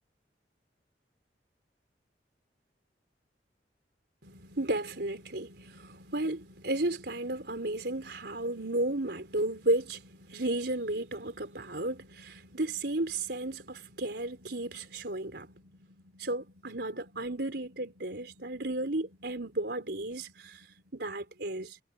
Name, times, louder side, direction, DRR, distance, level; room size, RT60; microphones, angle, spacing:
voice 1, 4.2-21.8, right 1 dB, 65° right, 4.6 m, -34 dB
head